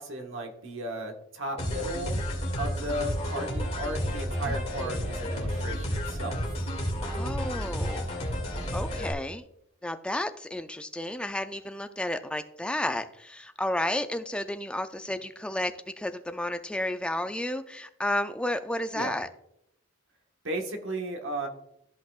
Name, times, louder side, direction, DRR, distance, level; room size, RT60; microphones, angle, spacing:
voice 1, 0.0-2.2 2.6-6.4 18.9-19.2 20.4-21.5, right 1 dB, 65° right, 3 dB, 1.4 m, -35 dB
sound 1, 1.6-9.1, equal, 30° left, 2.2 m, -31 dB
voice 2, 7.0-8.1 8.7-9.4 9.8-19.3, left 1 dB, 5° left, 8 dB, 0.4 m, -32 dB
13.5 x 5.7 x 2.4 m, 0.78 s
head